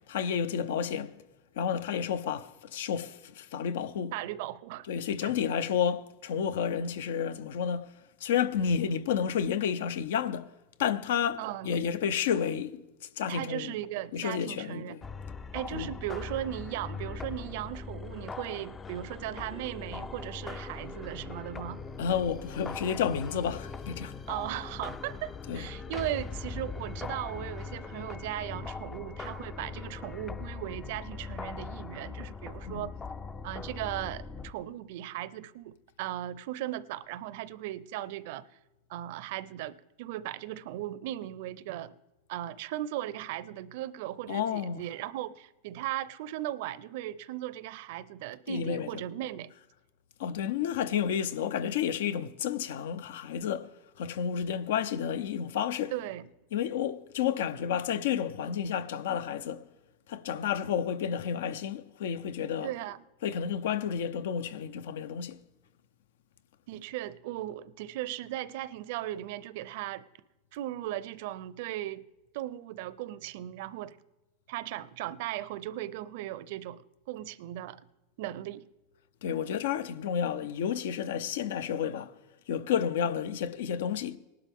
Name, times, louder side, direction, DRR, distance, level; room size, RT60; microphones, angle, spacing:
voice 1, 0.1-1.1 1.6-4.1 4.9-7.9 8.2-10.5 10.8-12.8 13.2-13.7 14.1-15.0 15.7-15.9 22.0-24.1 25.5-25.7 32.7-32.9 44.3-44.8 48.5-49.0 50.2-53.7 54.0-55.9 56.5-59.6 60.1-62.7 63.2-65.4 79.2-82.1 82.5-84.2, left 8 dB, 80° left, 0.7 m, -31 dB
voice 2, 4.1-4.9 5.2-5.3 11.4-11.8 13.3-15.0 15.5-21.8 24.3-32.9 33.4-38.4 38.9-41.9 42.3-49.5 55.9-56.3 62.6-63.0 66.7-70.0 70.5-72.1 72.3-74.0 74.5-77.8 78.2-78.7, right 13 dB, 60° right, 0.5 m, -37 dB
sound 1, 15.0-34.5, left 5 dB, 15° left, 0.4 m, -41 dB
19.0 x 11.5 x 3.6 m
supercardioid pair, 150°, 0 cm